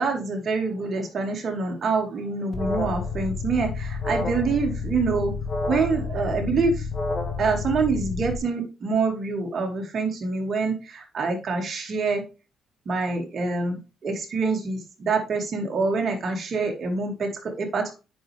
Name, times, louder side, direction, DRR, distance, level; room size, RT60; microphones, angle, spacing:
voice 1, 0.0-5.3 5.7-6.9 7.4-12.2 12.9-17.9, right 4 dB, 50° right, 2 dB, 2.4 m, -26 dB
Alarm, 2.5-8.4, left 4 dB, 35° left, 2.0 m, -29 dB
8.4 x 6.0 x 3.5 m, 0.30 s
supercardioid pair, 60°, 0 cm